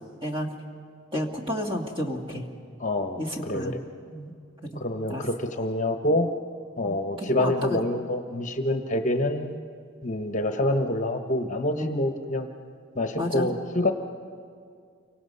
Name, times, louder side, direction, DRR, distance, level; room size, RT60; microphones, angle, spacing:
voice 1, 1.1-2.4 3.2-3.7 4.1-4.3 4.7-4.8 5.1-5.2 6.8-7.8 11.7-12.1 13.2-13.5, left 1 dB, 25° right, 1 dB, 2.2 m, -31 dB
voice 2, 2.8-3.7 4.7-6.3 6.8-9.6 10.0-12.5 12.9-13.9, left 1 dB, 40° left, 5 dB, 1.1 m, -26 dB
29.0 x 24.5 x 5.5 m, 2.2 s
head